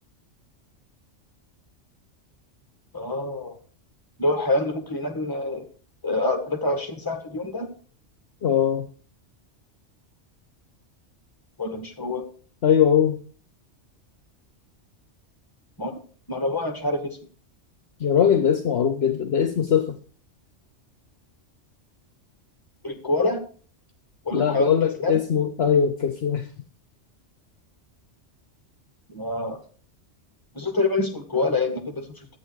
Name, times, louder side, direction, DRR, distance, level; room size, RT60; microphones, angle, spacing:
voice 1, 2.9-3.6 4.2-5.7 6.0-7.7 11.6-12.3 15.8-16.0 16.3-17.2 22.8-23.4 24.3-24.8 25.0-25.2 29.1-29.6 30.5-32.3, left 2 dB, 15° left, 5 dB, 1.9 m, -26 dB
voice 2, 8.4-8.9 12.6-13.2 18.0-19.9 24.3-26.4, left 8 dB, 60° left, 9 dB, 1.1 m, -21 dB
12.5 x 8.5 x 4.7 m, 0.43 s
omnidirectional pair, 1.2 m